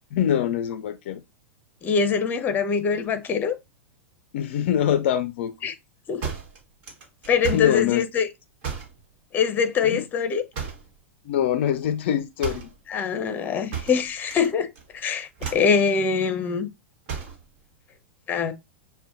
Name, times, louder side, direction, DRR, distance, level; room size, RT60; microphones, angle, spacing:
voice 1, 0.1-1.2 4.3-5.5 7.4-8.0 9.8-10.0 11.3-12.7, left 10 dB, 60° left, 0.4 m, -24 dB
voice 2, 1.8-3.6 5.6-5.7 6.1-6.3 7.3-8.3 9.3-10.4 12.9-14.7 14.9-16.7 18.3-18.5, left 6 dB, 25° left, 0.7 m, -23 dB
sound 1, 6.2-7.8 8.6-9.0 10.5-11.0 12.4-12.8 13.7-14.5 14.7-15.0 15.4-15.8 17.1-17.4, right 7 dB, 55° right, 1.3 m, -33 dB
6.6 x 2.2 x 2.5 m
hypercardioid pair, 100°, 7 cm